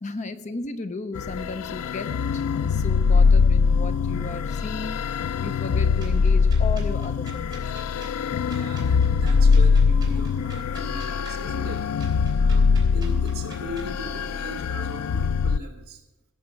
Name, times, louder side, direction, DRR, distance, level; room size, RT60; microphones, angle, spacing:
voice 1, 0.0-7.7, left 3 dB, 35° left, 10 dB, 0.6 m, -35 dB
sound 1, 1.2-15.6, left 5 dB, 85° left, 0.4 m, -22 dB
sound 2, 6.0-13.9, right 4 dB, 20° right, 3.7 m, -48 dB
voice 2, 8.4-11.8 12.1-16.0, equal, 45° right, 2 dB, 2.7 m, -39 dB
17.5 x 7.0 x 7.5 m, 0.97 s
head